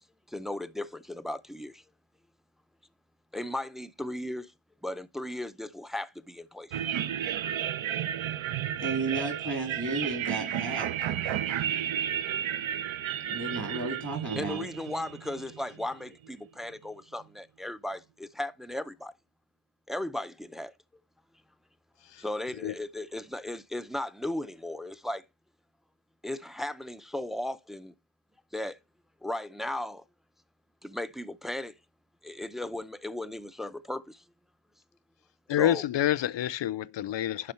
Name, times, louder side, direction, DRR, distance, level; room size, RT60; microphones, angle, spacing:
voice 1, 0.3-1.8 3.3-4.5 4.8-6.8 14.4-19.1 19.9-20.7 22.2-25.2 26.2-27.9 28.5-28.8 29.2-30.0 30.8-31.7 32.2-34.2 35.6-35.8, left 1 dB, ahead, 0.4 m, -36 dB
sound 1, 6.7-16.1, right 10 dB, 75° right, 0.6 m, -32 dB
voice 2, 8.8-10.9 13.3-14.6, right 3 dB, 40° right, 2.3 m, -33 dB
voice 3, 35.5-37.5, left 12 dB, 65° left, 0.6 m, -28 dB
11.0 x 3.8 x 4.4 m
wide cardioid pair, 70°, 48 cm